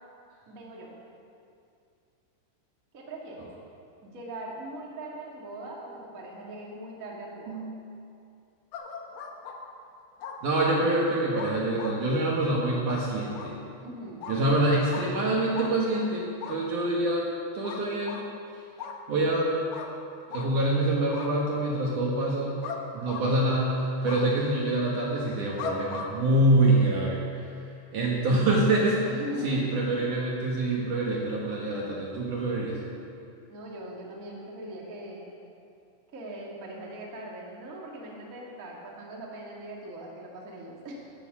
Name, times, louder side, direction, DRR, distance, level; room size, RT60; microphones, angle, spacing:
voice 1, 0.5-0.9 2.9-3.5 4.0-7.6 13.8-14.3 29.1-29.6 31.1-31.2 33.5-35.3 36.1-41.1, right 1 dB, 85° right, -3 dB, 0.7 m, -41 dB
sound 1, 8.7-9.6 10.2-10.7 11.4-12.0 12.9-13.1 13.3-13.5 14.2-14.4 14.9-15.1 15.5-15.7 16.4-16.6 17.6-18.2 18.8-19.0 19.7-19.9 20.3-20.5 21.1-21.3 22.6-22.8 23.1-23.6 24.1-24.2 25.6-26.1, left 6 dB, 75° left, 2.4 m, -38 dB
voice 2, 10.4-13.6 14.3-17.3 17.5-18.2 19.1-19.5 20.3-22.6 22.9-27.2 27.9-29.1 29.4-32.8, right 1 dB, 65° right, -3 dB, 2.0 m, -25 dB
15.5 x 9.7 x 6.2 m, 2.5 s
omnidirectional pair, 5.7 m